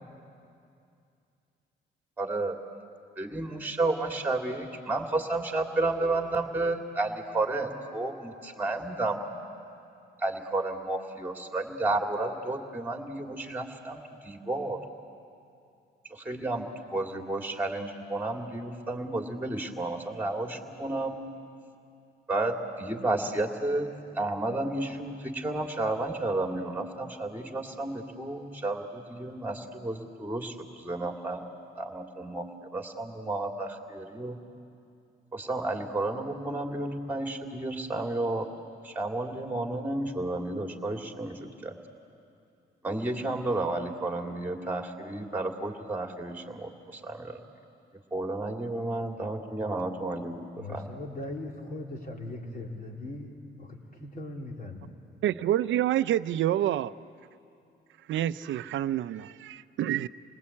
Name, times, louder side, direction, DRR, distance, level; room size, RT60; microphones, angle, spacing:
voice 1, 2.2-2.6 3.2-9.2 10.2-14.8 16.1-21.2 22.3-23.9 24.1-31.4 31.8-32.5 32.7-34.4 35.3-38.5 38.8-41.7 42.8-47.4 48.1-50.8, right 2 dB, 10° right, 2 dB, 2.7 m, -32 dB
voice 2, 50.6-53.4 54.0-54.9, left 2 dB, 45° left, 1 dB, 3.6 m, -39 dB
voice 3, 55.2-56.9 58.1-60.1, right 12 dB, 75° right, 15 dB, 0.6 m, -27 dB
29.0 x 20.0 x 8.6 m, 2.5 s
cardioid pair, 90°, 20 cm